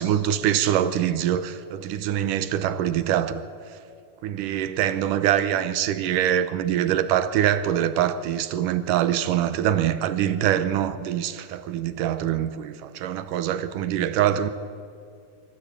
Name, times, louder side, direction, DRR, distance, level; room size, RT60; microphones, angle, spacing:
voice 1, 0.0-3.4 4.2-14.5, right 10 dB, 75° right, 2.1 m, -24 dB
26.0 x 13.5 x 8.5 m
omnidirectional pair, 4.2 m